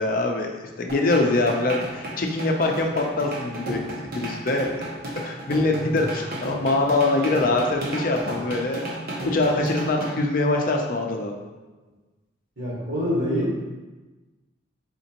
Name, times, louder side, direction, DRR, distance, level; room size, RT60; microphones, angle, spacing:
voice 1, 0.0-4.9 5.2-8.8 9.2-11.3, left 2 dB, 45° left, 2 dB, 0.5 m, -24 dB
sound 1, 0.9-10.1, right 1 dB, 50° right, 0.7 m, -33 dB
voice 2, 12.6-13.6, equal, 70° right, -6 dB, 1.5 m, -26 dB
4.3 x 3.8 x 2.9 m, 1.2 s
head